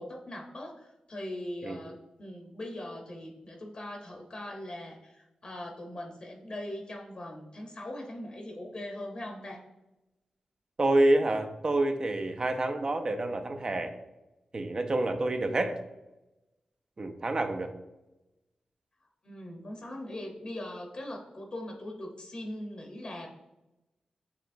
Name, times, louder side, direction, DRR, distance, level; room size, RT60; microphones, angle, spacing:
voice 1, 0.0-9.6 19.2-23.3, left 1 dB, 45° left, 1 dB, 0.8 m, -40 dB
voice 2, 10.8-13.9 14.5-15.8 17.0-17.7, right 1 dB, 35° right, 6 dB, 0.5 m, -27 dB
6.8 x 2.8 x 2.6 m, 0.98 s
wide cardioid pair, 100°, 2 cm